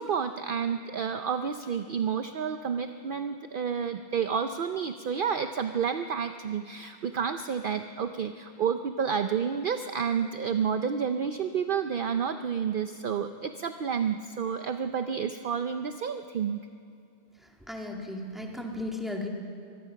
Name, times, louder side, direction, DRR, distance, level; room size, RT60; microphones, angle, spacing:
voice 1, 0.0-16.6, right 7 dB, 55° right, 8 dB, 0.8 m, -30 dB
voice 2, 17.7-19.3, left 2 dB, ahead, 0 dB, 2.2 m, -35 dB
24.0 x 20.0 x 5.8 m, 2.5 s
omnidirectional pair, 1.2 m